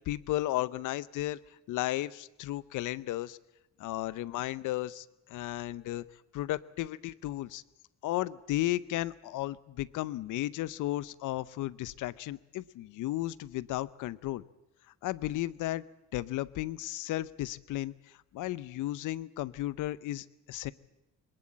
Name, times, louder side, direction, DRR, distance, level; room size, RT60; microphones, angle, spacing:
voice 1, 0.1-1.4 1.7-3.4 3.8-6.0 6.3-7.6 8.0-14.4 15.0-15.8 16.1-17.9 18.3-20.7, left 15 dB, 85° left, 18 dB, 0.7 m, -34 dB
21.0 x 19.5 x 8.7 m, 0.93 s
cardioid pair, 90°, 30 cm